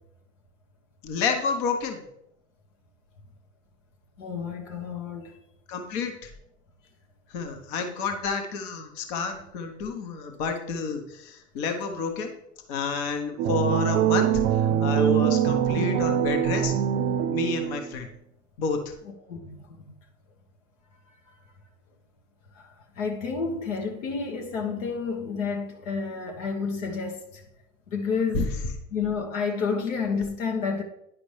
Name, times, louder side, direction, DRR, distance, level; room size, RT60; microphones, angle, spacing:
voice 1, 1.0-2.0 5.7-6.3 7.3-12.3 12.7-16.7 17.3-18.1 18.6-18.8 28.3-28.4, left 4 dB, 55° left, 1.2 m, -29 dB
voice 2, 4.2-5.4 15.0-15.1 19.0-19.9 22.5-27.4 27.9-28.5 28.9-30.8, left 5 dB, 70° left, 1.3 m, -30 dB
sound 1, 13.4-17.9, right 10 dB, 60° right, 0.6 m, -23 dB
10.0 x 5.0 x 3.3 m
hypercardioid pair, 105°, 39 cm